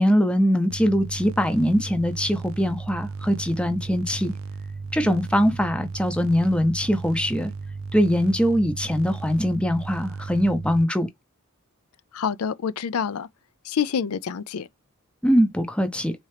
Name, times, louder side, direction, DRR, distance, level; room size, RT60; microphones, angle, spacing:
voice 1, 0.0-4.3 4.9-7.5 7.9-11.1 15.2-16.1, equal, 5° left, 0.6 m, -22 dB
sound 1, 0.7-10.8, right 4 dB, 65° right, 0.4 m, -35 dB
voice 2, 12.1-13.3 13.6-14.7, left 7 dB, 85° left, 0.5 m, -27 dB
4.3 x 3.7 x 3.3 m
head